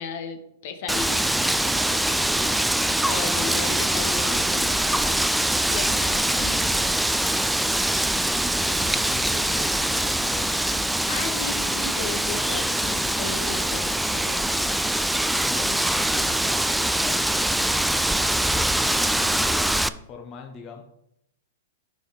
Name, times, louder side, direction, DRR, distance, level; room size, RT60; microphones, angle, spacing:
voice 1, 0.0-2.4 2.9-5.9 6.3-6.5 11.1-14.5, left 5 dB, 55° left, 8 dB, 1.1 m, -36 dB
Wind, 0.9-19.9, right 1 dB, 5° right, 0.3 m, -23 dB
voice 2, 5.8-6.9 8.6-10.8 15.4-20.8, left 5 dB, 30° left, 3 dB, 0.9 m, -41 dB
9.6 x 4.3 x 3.9 m, 0.80 s
hypercardioid pair, 105°, 0 cm